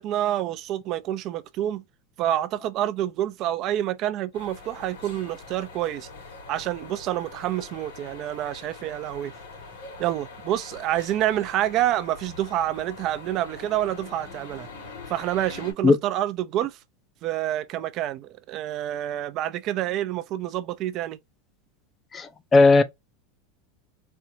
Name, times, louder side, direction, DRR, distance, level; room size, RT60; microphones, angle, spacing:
voice 1, 0.0-1.8 2.2-6.1 6.5-9.3 10.0-14.7 15.1-16.8 17.2-21.2, right 13 dB, 45° right, 0.5 m, -28 dB
sound 1, 4.3-15.7, left 4 dB, 85° left, 2.7 m, -43 dB
voice 2, 22.1-22.8, left 3 dB, 20° left, 0.5 m, -16 dB
4.4 x 2.4 x 2.7 m
supercardioid pair, 125°, 0 cm